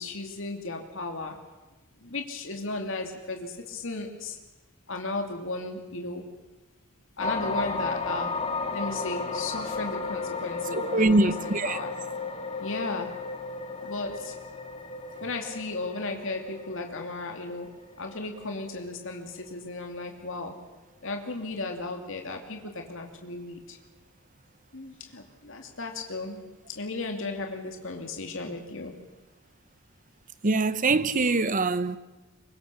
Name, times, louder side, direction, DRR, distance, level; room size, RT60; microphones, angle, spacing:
voice 1, 0.0-1.4 2.0-4.4 4.9-6.3 7.2-8.3 8.7-11.9 12.6-13.1 13.8-14.4 15.2-20.6 21.0-23.8 24.7-26.4 26.7-29.0, left 2 dB, 60° left, 2.5 m, -35 dB
sound 1, 7.2-19.5 20.0-20.2, left 4 dB, 30° left, 1.7 m, -34 dB
voice 2, 10.7-11.8 30.4-32.0, right 2 dB, 40° right, 0.9 m, -23 dB
24.5 x 22.5 x 7.0 m
head